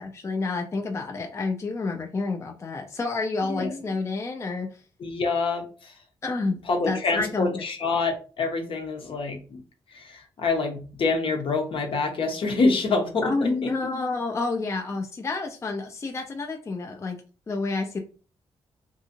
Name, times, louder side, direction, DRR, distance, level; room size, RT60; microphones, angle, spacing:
voice 1, 0.0-4.7 6.2-6.6 6.9-7.6 13.2-17.2 17.5-18.0, left 3 dB, 30° left, 3 dB, 0.4 m, -29 dB
voice 2, 3.5-3.8 5.0-5.9 6.7-9.6 9.9-13.7, left 3 dB, 65° left, 3 dB, 0.7 m, -26 dB
2.6 x 2.5 x 2.7 m, 0.37 s
cardioid pair, 95°, 10 cm